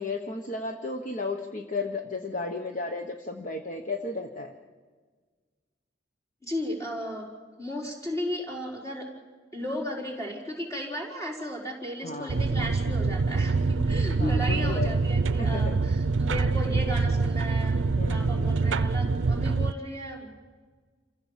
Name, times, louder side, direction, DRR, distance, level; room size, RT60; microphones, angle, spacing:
voice 1, 0.0-4.5 12.0-12.4 14.2-15.0 15.4-15.8 18.0-18.8, left 3 dB, 40° left, 4 dB, 1.1 m, -34 dB
voice 2, 6.4-7.3 7.6-9.1 9.5-20.3, equal, 15° left, -1 dB, 4.6 m, -35 dB
sound 1, 12.3-19.7, right 3 dB, 75° right, 0.5 m, -25 dB
28.0 x 15.5 x 7.4 m, 1.5 s
head